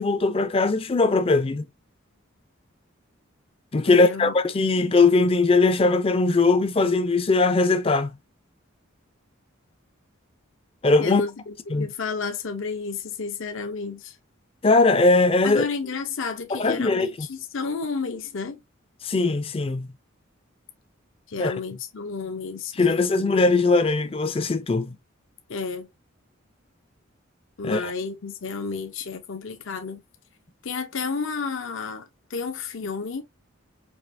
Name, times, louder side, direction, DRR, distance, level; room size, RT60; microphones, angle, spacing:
voice 1, 0.0-1.7 3.7-8.1 10.8-11.2 11.7-11.9 14.6-15.7 16.5-17.3 19.0-19.9 21.4-21.5 22.8-25.0 27.6-27.9, left 3 dB, 25° left, 0.4 m, -20 dB
voice 2, 3.9-4.3 11.0-14.1 15.4-18.6 21.3-23.2 25.5-25.9 27.6-30.0 30.6-33.2, left 4 dB, 70° left, 0.7 m, -31 dB
5.0 x 2.8 x 2.6 m
head